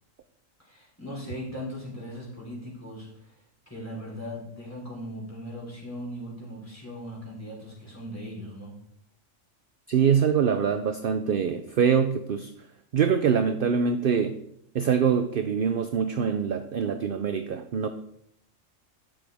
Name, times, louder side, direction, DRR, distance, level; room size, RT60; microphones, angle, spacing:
voice 1, 0.6-3.3 3.7-8.8, equal, 10° left, -4 dB, 3.7 m, -39 dB
voice 2, 9.9-12.5 12.9-14.4 14.7-17.9, right 7 dB, 55° right, 8 dB, 0.7 m, -24 dB
11.5 x 7.3 x 3.5 m, 0.73 s
omnidirectional pair, 1.4 m